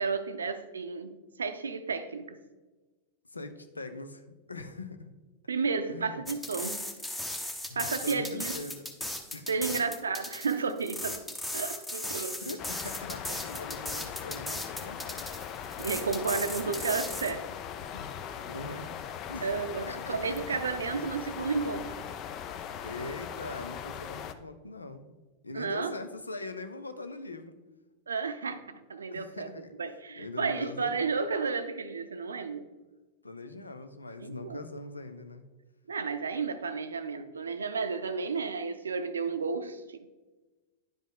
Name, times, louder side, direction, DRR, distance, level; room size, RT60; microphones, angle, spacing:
voice 1, 0.0-2.4 5.5-6.8 7.8-8.6 9.5-11.2 11.5-12.4 15.8-17.5 19.4-21.9 25.5-25.9 28.1-29.5 29.8-32.6 34.2-34.6 35.9-40.1, right 4 dB, 70° right, 10 dB, 0.6 m, -32 dB
voice 2, 3.3-5.1 5.9-6.2 7.7-8.8 9.3-9.9 12.4-15.3 15.8-15.9 17.9-18.9 19.3-19.5 19.9-20.4 22.8-25.1 25.4-27.6 29.1-29.7 30.2-31.0 33.2-35.4, left 2 dB, 80° left, 9 dB, 0.6 m, -42 dB
sound 1, 6.3-17.3, left 1 dB, 5° left, 0.9 m, -37 dB
sound 2, 12.6-24.3, left 8 dB, 35° left, 0.5 m, -40 dB
10.5 x 5.1 x 3.8 m, 1.2 s
figure-of-eight pair, 90°, 0 cm